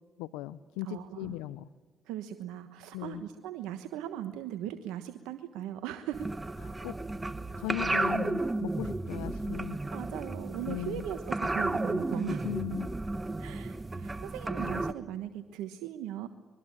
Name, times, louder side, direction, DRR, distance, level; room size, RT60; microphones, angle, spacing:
voice 1, 0.2-1.7 2.9-3.2 6.8-7.0 7.6-9.8 10.6-11.0 12.2-12.9, left 15 dB, 85° left, 15 dB, 0.7 m, -37 dB
voice 2, 0.8-1.4 2.1-6.3 9.9-12.5 13.4-16.3, right 11 dB, 80° right, 9 dB, 1.2 m, -39 dB
sound 1, 6.1-14.9, right 2 dB, 20° right, 1.4 m, -33 dB
23.5 x 23.0 x 9.0 m, 1.3 s
hypercardioid pair, 55°, 0 cm